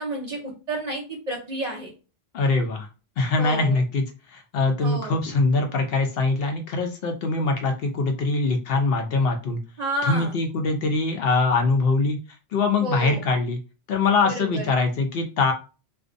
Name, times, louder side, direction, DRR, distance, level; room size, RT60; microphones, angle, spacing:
voice 1, 0.0-1.9 3.4-3.8 4.8-5.2 9.8-10.3 12.8-13.2 14.2-14.7, right 2 dB, 45° right, -1 dB, 0.6 m, -30 dB
voice 2, 2.3-2.9 3.2-9.6 10.0-12.2 12.5-13.6 13.9-15.5, left 3 dB, 65° left, 4 dB, 0.7 m, -23 dB
2.4 x 2.1 x 2.5 m, 0.32 s
omnidirectional pair, 1.1 m